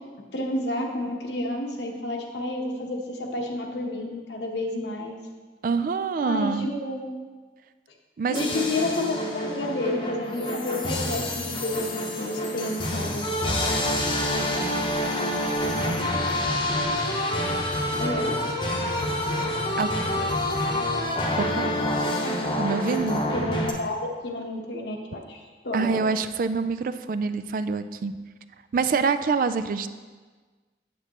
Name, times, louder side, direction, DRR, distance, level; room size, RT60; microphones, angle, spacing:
voice 1, 0.3-5.2 6.2-7.1 8.3-11.9 12.2-13.6 17.9-18.3 23.2-26.0, left 2 dB, 80° left, 1 dB, 1.0 m, -30 dB
voice 2, 5.6-6.7 8.2-8.4 19.8-19.9 21.4-21.7 22.6-23.2 25.7-28.1 28.7-29.9, right 5 dB, 50° right, 12 dB, 0.3 m, -26 dB
sound 1, 8.3-23.7, left 1 dB, 25° left, 0.8 m, -27 dB
8.0 x 7.8 x 2.9 m, 1.4 s
head